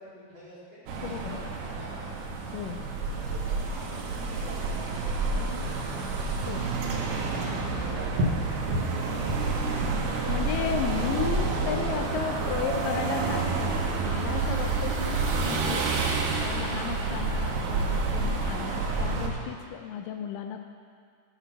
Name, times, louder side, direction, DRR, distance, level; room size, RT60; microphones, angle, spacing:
voice 1, 0.0-2.1 3.1-6.3 7.1-9.2, equal, 30° right, -9 dB, 4.1 m, -47 dB
sound 1, 0.9-19.3, right 3 dB, 80° right, 3.2 m, -29 dB
voice 2, 1.0-1.5 2.5-2.9 6.5-6.7 10.3-16.0 16.3-20.6, left 9 dB, 80° left, 5 dB, 2.0 m, -34 dB
sound 2, 8.1-15.6, right 1 dB, 60° right, 1.7 m, -36 dB
14.5 x 8.0 x 5.6 m, 2.1 s
omnidirectional pair, 4.4 m